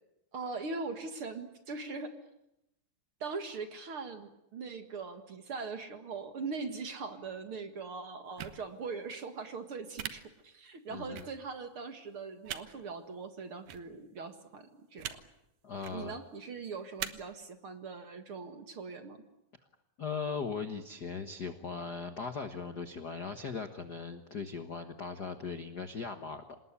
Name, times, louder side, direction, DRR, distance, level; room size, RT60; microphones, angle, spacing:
voice 1, 0.3-2.1 3.2-15.2 15.9-19.2, right 4 dB, 45° right, 8 dB, 2.3 m, -41 dB
sound 1, 8.4-8.6 10.0-10.1 11.2-11.3 12.5-12.6 13.7-13.8 15.0-15.2 15.7-16.0 17.0-17.1, right 11 dB, 80° right, 2.8 m, -38 dB
voice 2, 10.9-11.3 15.6-16.2 20.0-26.6, left 5 dB, 50° left, 8 dB, 1.2 m, -39 dB
27.5 x 19.5 x 9.9 m, 0.84 s
omnidirectional pair, 3.7 m